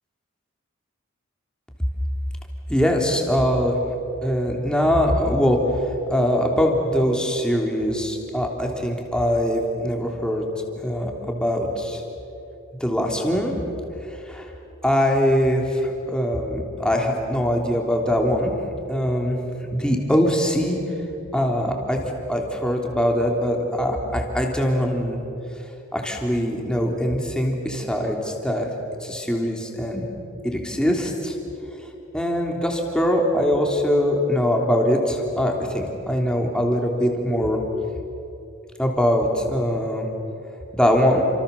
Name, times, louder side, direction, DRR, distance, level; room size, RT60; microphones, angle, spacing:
voice 1, 2.7-3.8 4.2-5.6 6.1-10.5 10.8-12.0 12.8-13.5 14.1-14.4 14.8-18.5 18.9-19.4 19.7-20.8 21.3-22.0 22.3-25.2 25.9-28.7 29.0-30.1 30.4-31.4 32.1-37.6 38.8-40.1 40.7-41.2, equal, 5° left, 1 dB, 3.4 m, -22 dB
29.5 x 26.5 x 7.2 m, 2.9 s
head